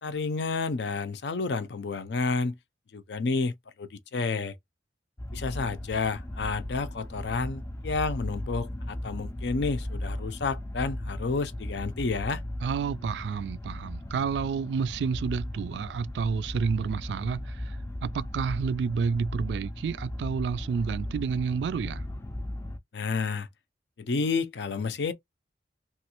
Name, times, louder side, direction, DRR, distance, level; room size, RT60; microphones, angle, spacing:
voice 1, 0.0-2.5 2.9-3.5 3.8-4.5 5.3-12.4 22.9-23.5 24.0-25.1, left 4 dB, 70° left, 0.5 m, -30 dB
sound 1, 5.2-22.8, left 1 dB, 15° left, 0.4 m, -37 dB
voice 2, 12.6-17.8 18.0-22.0, right 6 dB, 75° right, 0.3 m, -30 dB
3.0 x 2.4 x 2.9 m
head